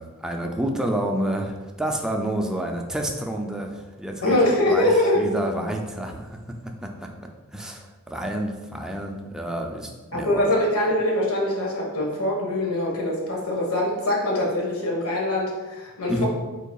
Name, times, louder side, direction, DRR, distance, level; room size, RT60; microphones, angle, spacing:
voice 1, 0.0-4.9 5.2-6.4 6.8-6.9 7.5-10.4 16.1-16.2, right 1 dB, 5° right, 1 dB, 0.3 m, -29 dB
voice 2, 4.2-5.3 10.1-16.2, left 1 dB, 90° left, -2 dB, 1.3 m, -23 dB
5.4 x 3.9 x 2.3 m, 1.2 s
head